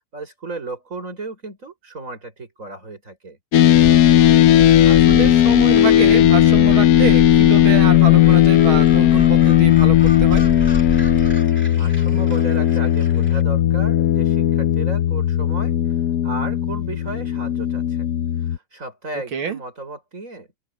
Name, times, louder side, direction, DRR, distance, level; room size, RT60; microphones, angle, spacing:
voice 1, 0.1-3.4 11.3-18.1 18.4-20.5, right 3 dB, 40° right, 6.4 m, -34 dB
sound 1, 3.5-18.6, left 12 dB, 70° left, 0.8 m, -15 dB
sound 2, 3.7-11.4, left 2 dB, 30° left, 0.5 m, -29 dB
voice 2, 4.9-10.5 19.3-19.6, right 7 dB, 80° right, 2.7 m, -27 dB
Gull seagull, 7.6-13.4, equal, 5° left, 2.2 m, -40 dB
open air
omnidirectional pair, 2.2 m